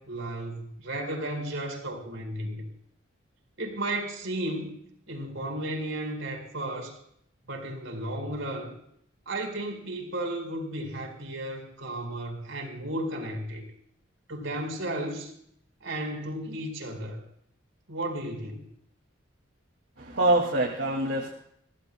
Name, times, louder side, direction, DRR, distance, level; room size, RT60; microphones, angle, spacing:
voice 1, 0.0-2.7 3.6-4.7 5.1-7.0 7.5-8.7 9.3-13.6 14.3-15.3 15.8-17.2 17.9-18.7, right 1 dB, 75° right, 4 dB, 4.5 m, -34 dB
voice 2, 20.0-21.3, right 1 dB, 60° right, -1 dB, 2.3 m, -25 dB
26.5 x 16.5 x 2.2 m, 0.68 s
head